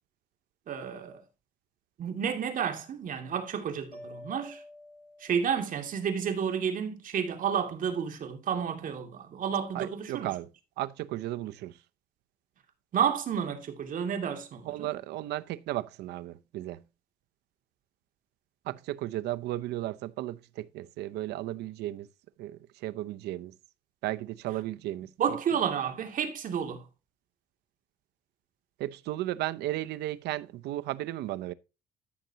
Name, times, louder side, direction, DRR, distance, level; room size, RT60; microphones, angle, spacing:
voice 1, 0.7-1.2 2.0-4.6 5.2-10.3 12.9-14.9 25.2-26.8, right 7 dB, 55° right, 2.5 m, -31 dB
Mallet percussion, 3.9-6.0, left 1 dB, 10° left, 1.1 m, -49 dB
voice 2, 9.7-10.5 10.8-11.8 14.7-16.8 18.6-22.1 22.4-23.5 24.0-25.1 28.8-31.5, right 15 dB, 80° right, 0.7 m, -35 dB
13.5 x 6.7 x 2.9 m
cardioid pair, 110°, 17 cm